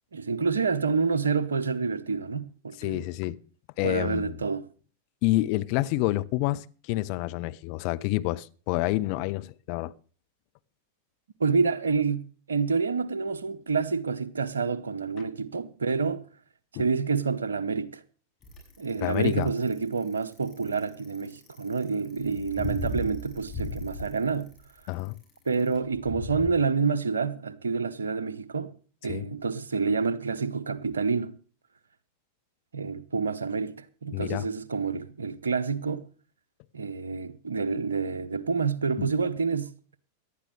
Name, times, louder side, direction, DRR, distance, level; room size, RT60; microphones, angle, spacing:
voice 1, 0.1-3.0 3.8-4.6 11.4-16.2 16.8-18.0 18.8-24.5 25.4-28.7 29.0-31.3 32.7-36.1 36.7-39.7, right 5 dB, 70° right, 1.0 m, -28 dB
voice 2, 2.8-3.4 3.8-4.4 5.2-9.9 19.0-19.5 24.9-25.1 29.1-29.3 34.1-34.5 39.0-39.1, left 18 dB, 45° left, 0.7 m, -28 dB
Bicycle, 18.4-26.5, left 2 dB, 20° left, 6.8 m, -37 dB
18.0 x 12.0 x 3.3 m
figure-of-eight pair, 90°, 0 cm